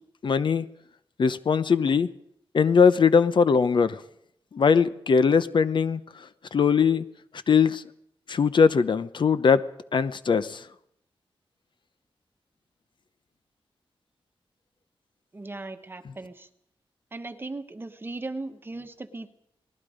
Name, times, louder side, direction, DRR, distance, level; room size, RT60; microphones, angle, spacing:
voice 1, 0.2-0.6 1.2-2.1 2.5-4.0 4.5-6.0 6.5-7.0 7.5-7.8 8.3-9.6 9.9-10.6, left 6 dB, 55° left, 13 dB, 0.8 m, -20 dB
voice 2, 15.3-16.5 17.1-19.3, right 2 dB, 25° right, 8 dB, 1.2 m, -37 dB
27.5 x 19.5 x 5.1 m, 0.73 s
wide cardioid pair, 170°, 9 cm